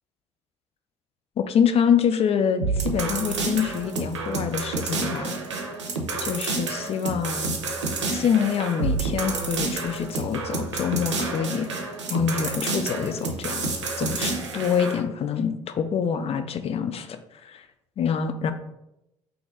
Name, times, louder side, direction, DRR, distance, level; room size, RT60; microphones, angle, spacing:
voice 1, 1.4-5.4 6.2-7.5 8.1-11.7 12.1-17.2 17.4-17.6 18.0-18.5, left 7 dB, 45° left, 9 dB, 0.4 m, -26 dB
sound 1, 2.6-15.0, right 3 dB, 90° right, 0.5 m, -29 dB
3.9 x 2.9 x 3.7 m, 0.87 s
hypercardioid pair, 55°, 15 cm